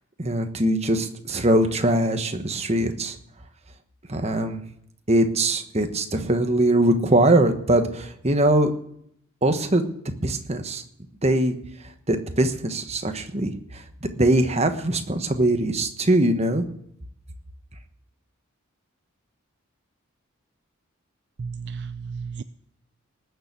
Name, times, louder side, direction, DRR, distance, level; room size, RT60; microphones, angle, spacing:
voice 1, 0.2-3.1 4.1-4.6 5.1-8.7 9.4-9.8 10.2-10.8 11.2-11.5 12.1-13.5 14.0-16.6, right 1 dB, 30° right, 7 dB, 1.2 m, -21 dB
voice 2, 21.4-22.4, right 5 dB, 55° right, 12 dB, 0.4 m, -33 dB
19.0 x 6.9 x 8.3 m, 0.72 s
head